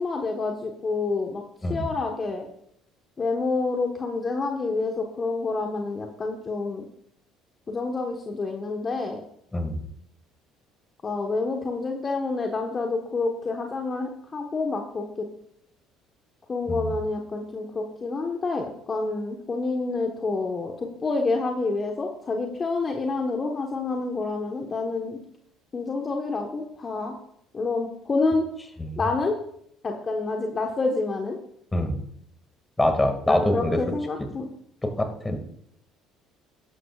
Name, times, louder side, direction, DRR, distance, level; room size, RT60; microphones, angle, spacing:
voice 1, 0.0-1.4 1.7-2.5 3.2-6.8 7.7-9.2 11.0-15.3 16.5-25.2 25.7-27.1 27.5-28.4 29.0-29.4 29.8-31.4 33.3-34.5, left 3 dB, 35° left, 2 dB, 1.4 m, -28 dB
voice 2, 31.7-32.0 32.8-33.8 34.8-35.4, left 1 dB, 15° left, 6 dB, 2.2 m, -24 dB
12.5 x 11.5 x 2.5 m, 0.71 s
hypercardioid pair, 70°, 0 cm